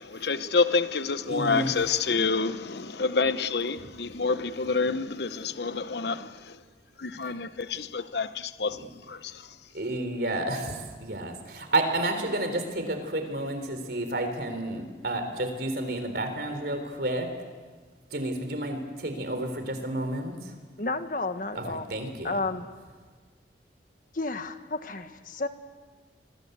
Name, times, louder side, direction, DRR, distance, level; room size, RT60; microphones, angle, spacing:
voice 1, 0.0-6.6 7.0-9.5, left 4 dB, 65° left, 0.9 m, -28 dB
voice 2, 1.3-1.7 8.7-8.9 9.7-17.3 18.1-20.5 21.6-22.3, right 1 dB, 55° right, 4.0 m, -31 dB
voice 3, 20.8-21.9 22.2-22.7 24.1-25.5, left 3 dB, 45° left, 1.5 m, -31 dB
28.0 x 22.5 x 8.2 m
head